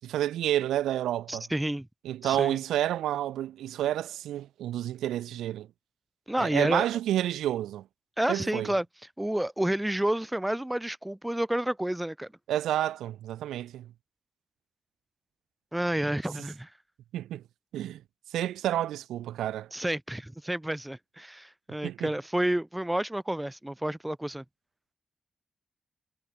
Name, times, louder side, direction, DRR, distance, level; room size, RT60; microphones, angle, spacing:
voice 1, 0.0-1.4 2.0-5.7 6.4-7.8 8.3-8.7 12.5-13.9 17.1-17.4 17.7-18.0 18.3-19.7 21.8-22.1, right 12 dB, 90° right, 0.9 m, -30 dB
voice 2, 1.3-1.9 2.2-2.6 6.3-6.8 8.2-8.8 9.2-12.3 15.7-16.7 19.7-24.4, right 1 dB, 10° right, 1.1 m, -30 dB
supercardioid pair, 45°, 0 cm